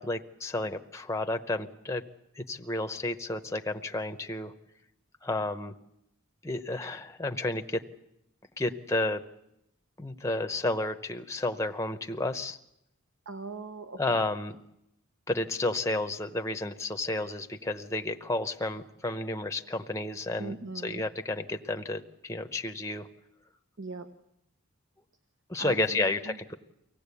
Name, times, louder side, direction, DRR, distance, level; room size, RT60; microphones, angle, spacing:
voice 1, 0.0-2.0 2.3-4.5 5.2-5.7 6.4-7.8 8.6-9.2 10.0-12.6 14.0-14.5 15.3-20.6 20.8-23.1 25.5-26.5, left 2 dB, 15° left, 7 dB, 0.8 m, -31 dB
voice 2, 13.2-14.2 20.4-21.0 23.8-24.1 25.6-26.4, right 3 dB, 60° right, 8 dB, 1.0 m, -40 dB
24.5 x 17.5 x 8.3 m, 0.83 s
head